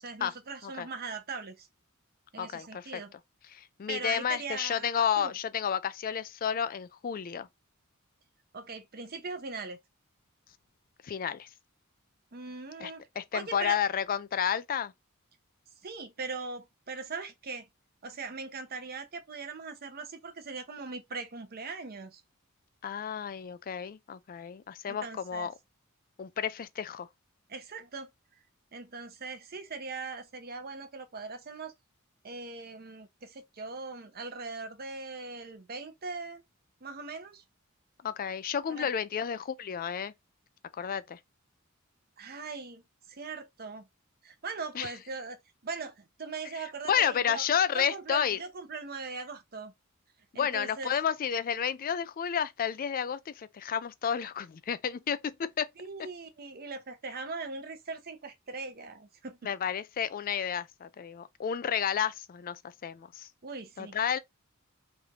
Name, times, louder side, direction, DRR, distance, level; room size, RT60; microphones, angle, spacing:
voice 1, 0.0-1.7 2.3-3.1 3.9-4.9 5.2-5.3 8.5-9.8 12.3-13.0 13.3-13.8 15.8-17.7 18.0-22.2 24.9-25.5 27.5-28.1 28.7-31.7 32.2-36.4 36.8-37.4 38.7-38.9 42.2-42.8 43.1-43.9 44.2-47.4 47.7-49.7 50.3-50.9 55.8-59.4 63.4-64.0, right 4 dB, 45° right, 0.8 m, -40 dB
voice 2, 2.4-3.0 3.5-7.5 11.0-11.5 12.8-12.9 13.2-14.9 22.8-25.5 26.2-27.1 38.0-40.1 40.8-41.2 44.8-44.9 46.9-48.4 50.4-55.7 59.4-63.3 63.8-64.2, left 8 dB, 40° left, 0.4 m, -31 dB
3.3 x 2.6 x 4.5 m
head